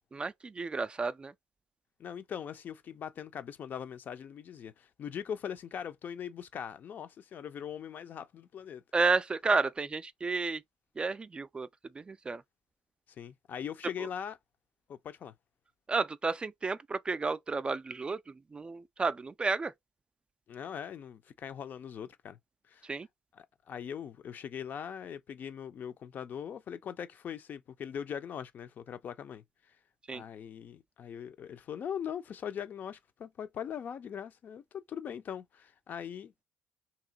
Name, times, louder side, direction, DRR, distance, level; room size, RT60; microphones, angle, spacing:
voice 1, 0.1-1.3 8.9-10.6 11.0-11.7 12.0-12.4 15.9-19.7 22.8-23.1 30.1-30.2, right 4 dB, 25° right, 0.3 m, -31 dB
voice 2, 2.0-8.8 13.2-14.4 14.9-15.3 20.5-22.4 22.7-22.9 23.3-29.4 30.1-36.3, left 8 dB, 55° left, 0.5 m, -41 dB
2.9 x 2.7 x 3.8 m
hypercardioid pair, 60°, 4 cm